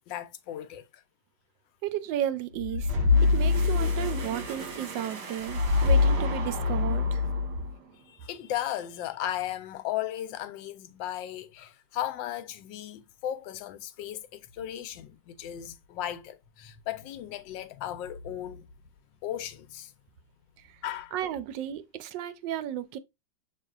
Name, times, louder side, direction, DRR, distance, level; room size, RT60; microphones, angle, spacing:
voice 1, 0.1-1.0 8.1-18.6 19.2-19.9 20.8-21.1, left 12 dB, 85° left, 1.3 m, -36 dB
voice 2, 1.8-2.9 3.2-7.2 21.1-23.0, right 11 dB, 80° right, 1.2 m, -33 dB
sound 1, 2.6-7.8, left 4 dB, 65° right, 1.8 m, -25 dB
6.5 x 3.1 x 2.3 m
omnidirectional pair, 2.0 m